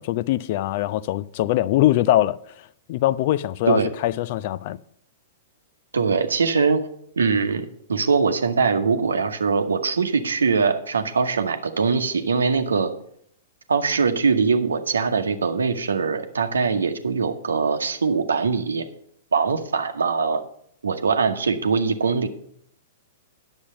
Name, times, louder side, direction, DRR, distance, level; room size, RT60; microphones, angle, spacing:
voice 1, 0.0-4.8, left 14 dB, 45° left, 0.3 m, -22 dB
voice 2, 5.9-6.9 7.2-12.9 13.7-18.9 19.3-20.4 20.8-22.3, right 5 dB, 70° right, 0.9 m, -22 dB
9.9 x 7.2 x 5.1 m
figure-of-eight pair, 105°, 0 cm